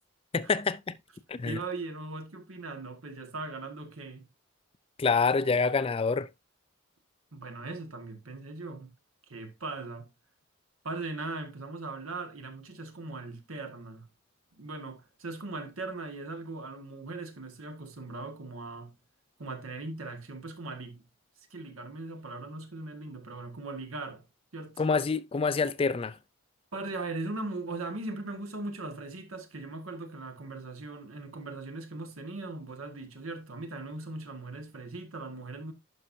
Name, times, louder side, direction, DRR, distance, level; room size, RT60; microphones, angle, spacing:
voice 1, 0.3-0.9 1.3-1.6 5.0-6.3 24.8-26.2, left 4 dB, 25° left, 0.4 m, -27 dB
voice 2, 1.4-4.3 7.3-8.9 9.3-10.1 10.8-14.1 14.5-18.9 19.4-21.0 21.5-24.2 24.5-24.8 26.7-35.7, right 3 dB, 70° right, 1.7 m, -39 dB
11.0 x 5.6 x 2.7 m
head